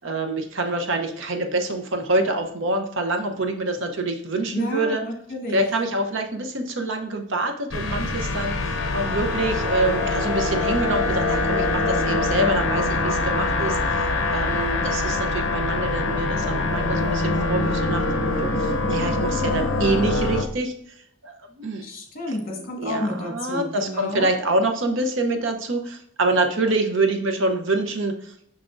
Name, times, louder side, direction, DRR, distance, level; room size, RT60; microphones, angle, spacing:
voice 1, 0.0-5.0 5.5-20.9 21.2-21.9 22.8-28.3, right 2 dB, 65° right, 5 dB, 0.8 m, -26 dB
voice 2, 4.5-5.6 21.8-24.3, left 1 dB, 45° left, 1 dB, 1.5 m, -30 dB
sound 1, 7.7-20.4, left 2 dB, 60° left, 0.6 m, -24 dB
6.3 x 6.0 x 2.5 m, 0.69 s
head